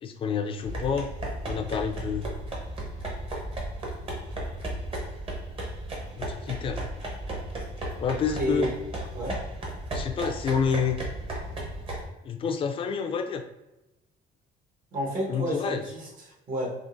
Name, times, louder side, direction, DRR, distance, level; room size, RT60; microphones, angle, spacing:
voice 1, 0.0-1.1 1.5-2.3 6.2-6.8 8.0-8.7 9.9-11.0 12.2-13.4 15.3-15.8, left 6 dB, 30° left, 6 dB, 0.3 m, -28 dB
sound 1, 0.6-12.0, right 1 dB, 35° right, 0.9 m, -35 dB
voice 2, 8.3-8.7 9.1-9.4 14.9-16.7, equal, 55° right, -2 dB, 1.2 m, -30 dB
3.7 x 2.4 x 2.5 m, 0.96 s
cardioid pair, 110°, 17 cm